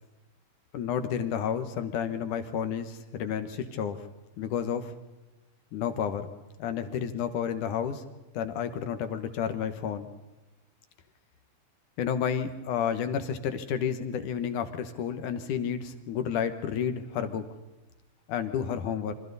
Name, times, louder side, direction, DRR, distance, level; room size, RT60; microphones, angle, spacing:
voice 1, 0.7-4.1 4.4-4.9 5.7-6.3 6.6-8.0 8.3-10.1 12.0-17.4 18.3-19.1, left 8 dB, 70° left, 9 dB, 2.5 m, -31 dB
28.5 x 24.5 x 4.1 m, 1.1 s
omnidirectional pair, 4.1 m